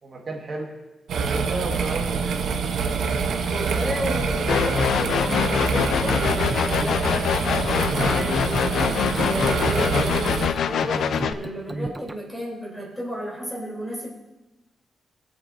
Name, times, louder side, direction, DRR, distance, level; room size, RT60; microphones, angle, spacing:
voice 1, 0.0-0.7 1.1-2.7, right 2 dB, 40° right, -1 dB, 1.6 m, -33 dB
sound 1, 1.1-10.5, right 5 dB, 80° right, 1.0 m, -26 dB
voice 2, 3.5-14.1, equal, 10° left, -3 dB, 3.5 m, -33 dB
sound 2, 4.5-11.3, left 8 dB, 75° left, 0.5 m, -24 dB
sound 3, 6.1-12.1, right 2 dB, 15° right, 0.5 m, -34 dB
23.0 x 8.1 x 2.7 m, 1.0 s
wide cardioid pair, 130°, 0 cm